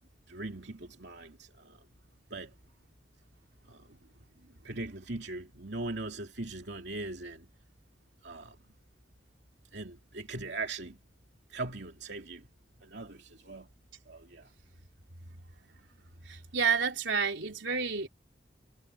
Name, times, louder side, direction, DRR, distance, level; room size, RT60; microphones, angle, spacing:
voice 1, 0.3-1.8 2.3-2.5 3.7-3.8 4.6-7.5 8.2-8.5 9.7-11.0 11.5-12.4 12.8-13.7 14.1-14.5, right 2 dB, 65° right, 2.9 m, -40 dB
voice 2, 16.3-18.1, right 6 dB, 85° right, 3.4 m, -30 dB
head